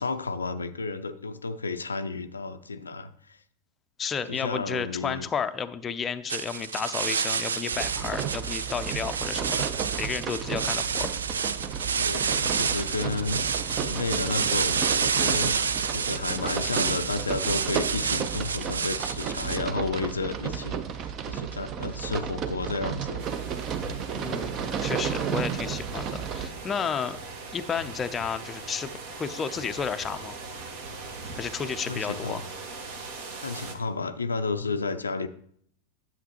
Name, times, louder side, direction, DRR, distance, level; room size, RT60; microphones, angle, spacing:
voice 1, 0.0-3.4 4.3-5.3 12.0-13.5 13.8-15.6 15.9-23.2 31.6-32.5 33.4-35.3, left 3 dB, 75° left, 10 dB, 0.4 m, -32 dB
voice 2, 4.0-11.1 24.1-27.2 27.5-30.4 31.3-32.4, left 6 dB, 20° left, 9 dB, 0.5 m, -32 dB
sound 1, 6.3-19.6, right 6 dB, 70° right, 0.4 m, -29 dB
sound 2, 7.7-26.5, right 8 dB, 35° right, 0.7 m, -33 dB
sound 3, 23.2-33.8, right 3 dB, 55° right, 1.3 m, -40 dB
10.5 x 7.3 x 2.9 m, 0.64 s
figure-of-eight pair, 90°, 0 cm